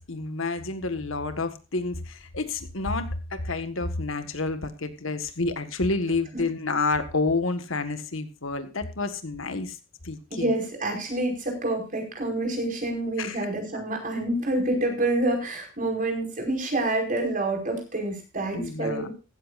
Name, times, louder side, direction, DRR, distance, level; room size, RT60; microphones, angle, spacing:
voice 1, 0.0-9.8 10.0-10.5 13.2-13.5 13.7-13.8 18.5-19.1, left 3 dB, 70° left, 9 dB, 1.6 m, -29 dB
voice 2, 10.3-19.1, right 2 dB, 40° right, 1 dB, 5.3 m, -27 dB
16.0 x 13.5 x 2.5 m, 0.31 s
head